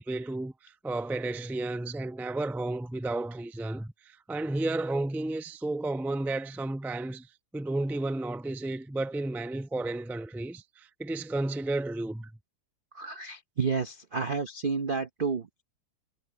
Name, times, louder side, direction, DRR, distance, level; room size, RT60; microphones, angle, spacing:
voice 1, 0.0-7.3 7.5-12.3, right 2 dB, 5° right, 0.3 m, -32 dB
voice 2, 12.9-15.6, right 5 dB, 55° right, 0.5 m, -31 dB
omnidirectional pair, 2.1 m